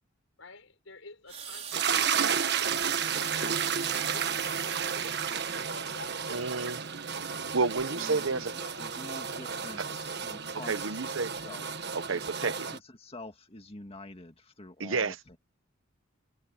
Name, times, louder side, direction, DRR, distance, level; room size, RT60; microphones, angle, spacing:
voice 1, 0.4-2.4 3.1-6.8 7.8-9.0, left 3 dB, 80° left, 5.3 m, -50 dB
sound 1, 1.3-6.2 6.9-7.1, right 8 dB, 35° right, 3.7 m, -42 dB
sound 2, 1.7-12.8, right 7 dB, 55° right, 1.4 m, -32 dB
voice 2, 6.3-6.8 7.5-8.5 9.8-9.9 10.6-11.5 11.9-12.7 14.8-15.4, right 4 dB, 75° right, 1.0 m, -31 dB
voice 3, 8.0-8.4 8.8-12.0 12.3-15.4, left 2 dB, 30° left, 2.2 m, -47 dB
head